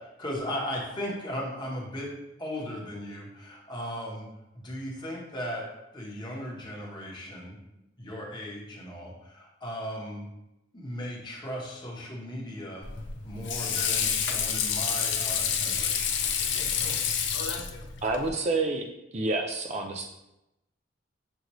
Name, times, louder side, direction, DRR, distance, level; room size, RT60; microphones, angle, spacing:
voice 1, 0.2-2.1 2.4-4.3 4.5-5.6 5.9-7.6 8.0-10.2 10.7-12.9 13.2-16.1, equal, 25° left, -3 dB, 1.0 m, -37 dB
Water / Sink (filling or washing), 12.8-18.3, left 7 dB, 65° left, 0.5 m, -29 dB
voice 2, 18.0-18.9 19.1-20.0, right 3 dB, 35° right, 3 dB, 0.3 m, -28 dB
6.4 x 2.5 x 3.0 m, 0.89 s
head